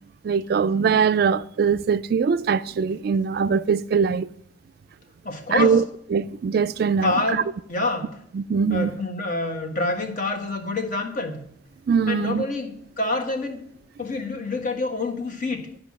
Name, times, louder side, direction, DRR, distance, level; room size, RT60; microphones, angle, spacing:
voice 1, 0.2-4.3 5.5-5.8 6.1-7.4 8.3-8.9 11.9-12.4, right 6 dB, 55° right, 0.3 m, -22 dB
voice 2, 5.2-5.8 7.0-7.4 7.7-8.1 8.7-11.4 12.1-13.6 14.0-15.7, left 2 dB, 45° left, 1.5 m, -27 dB
11.5 x 5.3 x 7.4 m
head